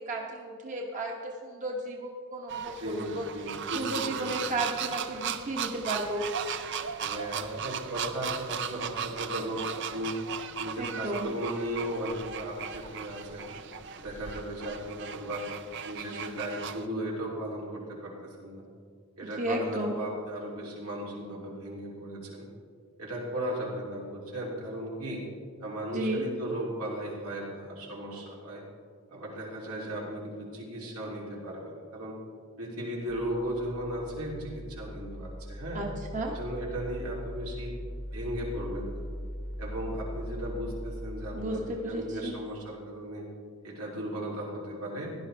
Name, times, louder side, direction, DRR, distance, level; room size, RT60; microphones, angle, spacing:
voice 1, 0.0-3.3 3.7-6.3 10.8-11.3 19.2-20.0 25.9-26.2 35.7-35.8 36.1-36.3 41.3-42.3, right 1 dB, 35° right, 0 dB, 1.0 m, -33 dB
sound 1, 2.5-16.9, right 7 dB, 55° right, 0.5 m, -37 dB
voice 2, 2.7-4.3 7.0-10.2 10.6-13.5 14.0-15.5 15.8-18.6 19.2-22.5 23.0-25.2 25.6-28.6 29.1-32.2 32.6-35.8 36.3-37.7 38.1-39.0 39.6-43.3 43.6-45.1, right 1 dB, 85° right, -4 dB, 3.1 m, -36 dB
sound 2, 33.1-42.2, equal, 5° right, 0.9 m, -40 dB
16.5 x 11.0 x 3.4 m, 2.1 s
head